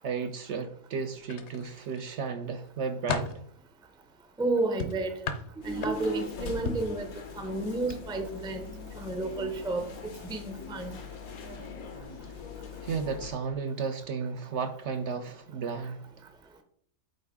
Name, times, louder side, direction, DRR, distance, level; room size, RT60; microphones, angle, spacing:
voice 1, 0.0-3.4 12.8-16.0, right 5 dB, 65° right, 7 dB, 0.7 m, -33 dB
sound 1, 1.2-2.1 2.6-3.4 4.8-6.2 6.7-7.0 7.8-8.0 8.4-8.6, left 4 dB, 60° left, 1.0 m, -35 dB
voice 2, 4.4-5.2 5.6-7.1 7.3-8.7 9.0-9.8 10.2-11.0, right 2 dB, 5° right, 6 dB, 0.4 m, -31 dB
sound 2, 5.6-13.3, left 5 dB, 85° left, 1.5 m, -42 dB
7.8 x 4.4 x 3.6 m, 0.67 s
omnidirectional pair, 1.5 m